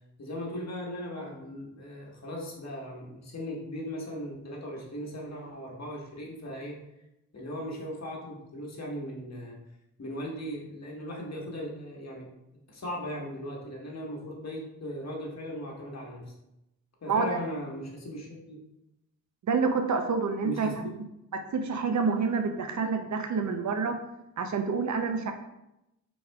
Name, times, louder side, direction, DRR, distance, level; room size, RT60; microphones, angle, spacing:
voice 1, 0.2-6.8 7.3-9.6 10.0-12.3 12.7-16.3 17.0-18.6 20.4-20.9, equal, 50° left, -2 dB, 1.6 m, -38 dB
voice 2, 17.1-17.4 19.5-20.7 21.3-24.0 24.4-25.3, right 5 dB, 55° right, 6 dB, 0.7 m, -28 dB
4.8 x 4.2 x 2.3 m, 0.87 s
cardioid pair, 55°, 35 cm